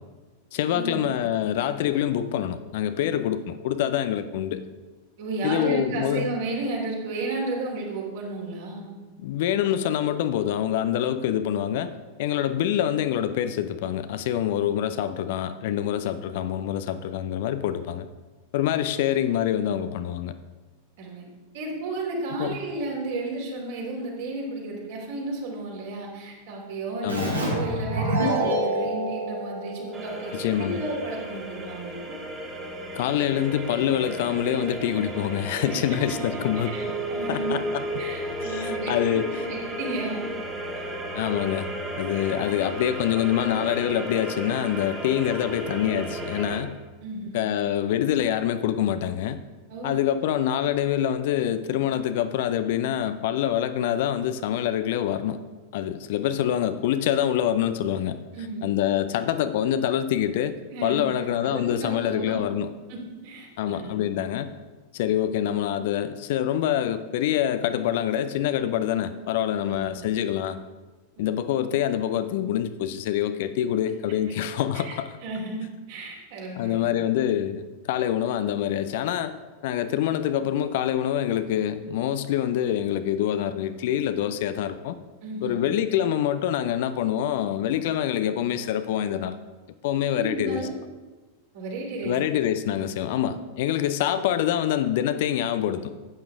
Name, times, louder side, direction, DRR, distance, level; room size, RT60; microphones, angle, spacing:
voice 1, 0.5-4.7 5.4-6.3 9.2-11.9 12.2-18.1 18.5-20.3 22.4-22.6 27.0-27.4 30.3-30.8 32.9-36.7 37.3-38.0 38.4-39.5 41.1-41.7 42.0-46.8 47.3-49.4 49.8-55.4 55.7-58.2 58.6-62.7 63.6-64.5 64.9-70.6 71.2-75.1 76.6-79.4 79.6-85.0 85.4-89.4 89.8-90.7 92.0-95.9, left 10 dB, 50° left, 11 dB, 0.6 m, -26 dB
voice 2, 5.2-8.9 21.0-21.3 21.5-32.1 35.6-36.0 36.7-37.6 38.0-38.9 39.4-40.3 40.8-40.9 47.0-47.4 49.7-50.0 58.3-58.7 60.7-61.0 61.4-62.4 62.9-64.1 69.7-70.0 74.7-74.9 75.2-77.0 85.2-85.6 90.1-90.7 91.5-92.2, right 2 dB, 50° right, -1 dB, 3.0 m, -33 dB
Keyboard (musical), 27.1-30.5, right 1 dB, 80° right, 2.3 m, -27 dB
sound 1, 29.9-46.6, right 1 dB, 20° right, 1.7 m, -34 dB
13.0 x 8.8 x 3.6 m, 1.3 s
figure-of-eight pair, 90°, 0 cm